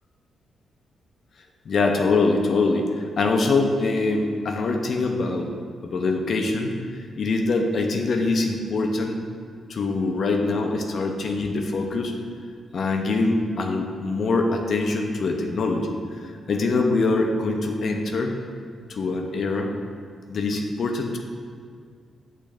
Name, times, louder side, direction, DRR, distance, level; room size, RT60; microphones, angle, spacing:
voice 1, 1.7-5.5 5.8-6.7 7.2-9.2 9.7-12.1 12.7-15.9 16.2-18.3 18.9-19.7 20.3-21.2, left 3 dB, 60° left, 3 dB, 0.4 m, -23 dB
6.2 x 2.7 x 3.2 m, 2.1 s
hypercardioid pair, 40°, 0 cm